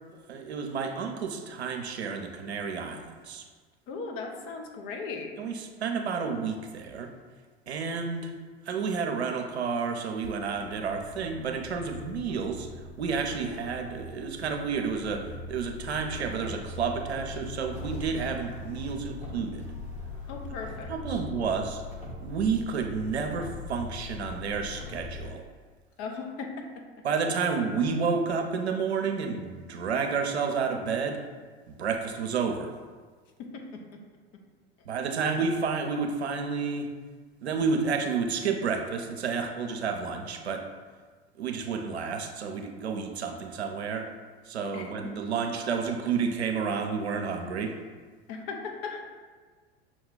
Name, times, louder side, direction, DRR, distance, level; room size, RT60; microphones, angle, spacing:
voice 1, 0.3-3.4 5.4-7.1 7.7-8.3 8.6-19.6 20.9-21.8 22.2-25.4 27.0-31.2 31.8-32.7 34.8-36.9 37.4-40.6 41.4-44.1 44.5-47.7, right 5 dB, 90° right, 4 dB, 0.6 m, -30 dB
voice 2, 3.9-5.3 20.3-21.2 26.0-27.1 33.4-34.0 34.3-34.4 44.7-45.1 48.3-49.0, left 4 dB, 50° left, 3 dB, 0.8 m, -38 dB
sound 1, 10.3-25.3, left 2 dB, 20° left, 1.1 m, -41 dB
6.0 x 2.3 x 3.7 m, 1.5 s
hypercardioid pair, 80°, 31 cm